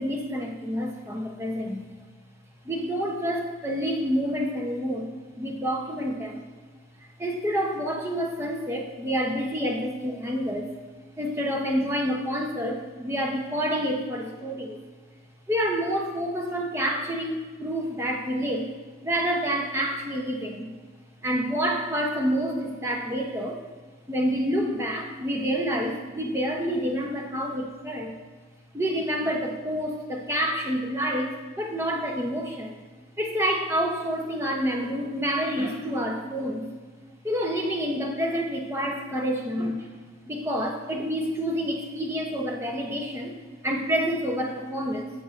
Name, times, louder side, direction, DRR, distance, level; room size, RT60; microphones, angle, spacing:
voice 1, 0.0-1.8 2.6-5.1 5.4-6.5 7.0-10.7 11.2-14.8 15.5-18.7 19.0-20.7 21.2-23.6 24.1-28.1 28.7-32.8 33.2-36.7 37.2-39.9 40.3-43.3 43.6-45.1, equal, 15° right, 0 dB, 0.8 m, -28 dB
14.5 x 6.4 x 2.5 m, 1.5 s
head